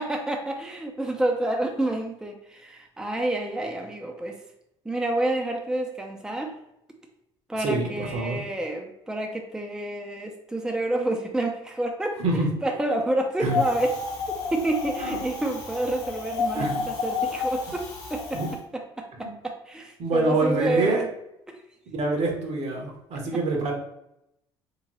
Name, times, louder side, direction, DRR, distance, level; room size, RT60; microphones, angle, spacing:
voice 1, 0.0-4.4 4.8-6.5 7.5-13.9 14.3-18.4 18.7-21.1 21.5-21.6, right 1 dB, 5° right, 2 dB, 0.5 m, -29 dB
voice 2, 7.6-8.4 12.2-12.5 13.4-13.6 15.0-15.2 16.5-16.8 18.3-18.5 19.2-19.3 20.0-21.0 21.9-23.7, right 3 dB, 55° right, 1 dB, 1.0 m, -26 dB
Wind, 13.5-18.6, left 4 dB, 90° left, 0.9 m, -30 dB
3.5 x 2.9 x 3.0 m, 0.82 s
hypercardioid pair, 60°, 13 cm